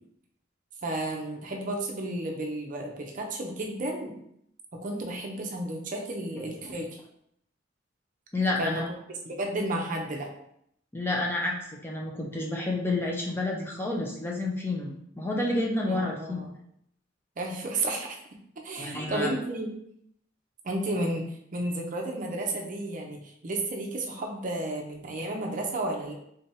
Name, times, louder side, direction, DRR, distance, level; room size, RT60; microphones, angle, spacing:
voice 1, 0.8-4.2 4.8-6.9 8.6-8.8 9.1-10.3 15.9-16.5 17.4-18.1 18.6-19.7 20.6-26.1, right 1 dB, 45° right, 1 dB, 0.6 m, -32 dB
voice 2, 8.3-8.9 10.9-16.4 18.8-19.3, left 2 dB, 10° left, -2 dB, 0.6 m, -30 dB
3.7 x 3.3 x 2.8 m, 0.72 s
head